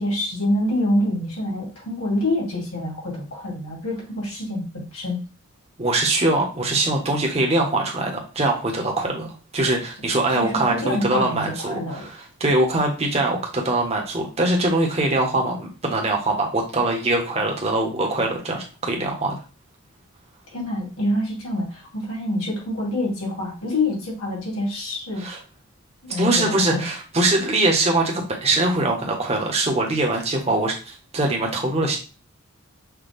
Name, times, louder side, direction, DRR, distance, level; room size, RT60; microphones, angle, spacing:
voice 1, 0.0-5.2 10.3-12.0 20.5-25.2 26.1-26.9, left 1 dB, 85° left, -3 dB, 2.4 m, -26 dB
voice 2, 5.8-19.4 25.2-25.4 26.2-32.0, right 2 dB, 30° right, 1 dB, 0.9 m, -22 dB
5.9 x 2.2 x 3.5 m, 0.34 s
head